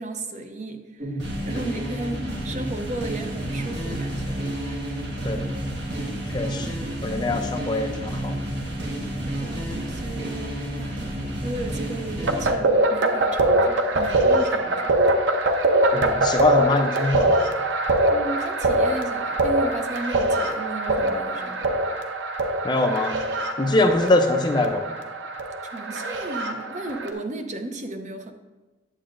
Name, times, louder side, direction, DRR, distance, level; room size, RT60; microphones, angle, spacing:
voice 1, 0.0-4.4 9.4-11.0 11.4-14.9 18.1-21.8 25.6-28.3, right 2 dB, 40° right, 6 dB, 0.6 m, -34 dB
sound 1, 1.0-12.5, right 1 dB, 70° right, 1.3 m, -30 dB
voice 2, 6.3-6.7 7.0-8.4 15.9-17.4 22.6-23.2 23.6-24.9, left 2 dB, 25° left, 5 dB, 0.5 m, -23 dB
sound 2, 12.3-27.1, right 1 dB, 90° right, 0.7 m, -23 dB
8.7 x 7.7 x 2.5 m, 1.2 s
head